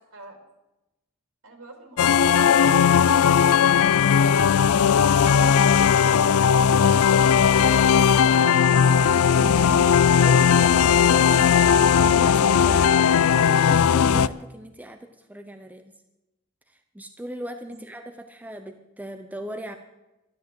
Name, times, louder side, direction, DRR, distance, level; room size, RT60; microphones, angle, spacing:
voice 1, 1.4-6.0 6.8-7.1 8.0-8.4 17.7-17.8, right 2 dB, 65° right, 2 dB, 3.1 m, -44 dB
sound 1, 2.0-14.3, left 7 dB, 80° left, 0.4 m, -17 dB
voice 2, 7.5-8.4 9.1-9.8 10.1-13.0 13.3-15.9 16.7-19.8, equal, 5° right, 7 dB, 0.6 m, -39 dB
13.0 x 10.5 x 7.8 m, 0.98 s
head